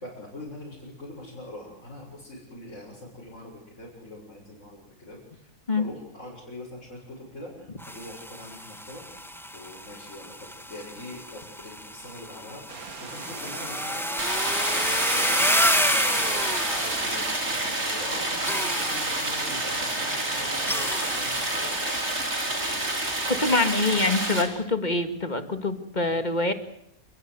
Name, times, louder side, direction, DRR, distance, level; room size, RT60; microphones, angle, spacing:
voice 1, 0.0-9.1 9.5-22.1 22.5-23.4 23.7-24.0 24.5-24.7, left 1 dB, 55° left, -4 dB, 7.3 m, -43 dB
sound 1, 7.8-17.8 18.4-19.8 20.7-21.9, equal, ahead, 1.4 m, -30 dB
sound 2, 12.7-21.2, right 5 dB, 85° right, 2.1 m, -41 dB
Stream, 14.2-24.4, right 1 dB, 50° right, 4.7 m, -29 dB
voice 2, 23.3-26.5, left 2 dB, 30° left, 8 dB, 2.2 m, -25 dB
28.5 x 22.5 x 8.2 m, 0.74 s
omnidirectional pair, 1.5 m